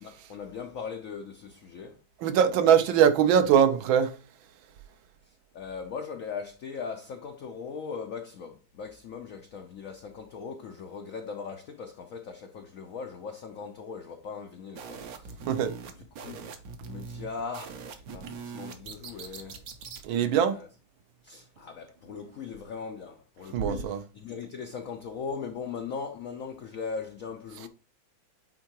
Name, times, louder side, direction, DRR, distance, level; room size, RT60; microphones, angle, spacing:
voice 1, 0.0-2.0 5.2-15.5 16.0-16.4 16.8-19.6 20.3-20.7 21.2-27.7, left 5 dB, 75° left, 0.7 m, -39 dB
voice 2, 2.2-4.1 15.5-15.7 20.0-20.6 23.5-24.0, right 8 dB, 75° right, 1.5 m, -22 dB
sound 1, 14.8-20.1, right 5 dB, 60° right, 1.0 m, -42 dB
9.0 x 3.7 x 3.0 m
omnidirectional pair, 2.2 m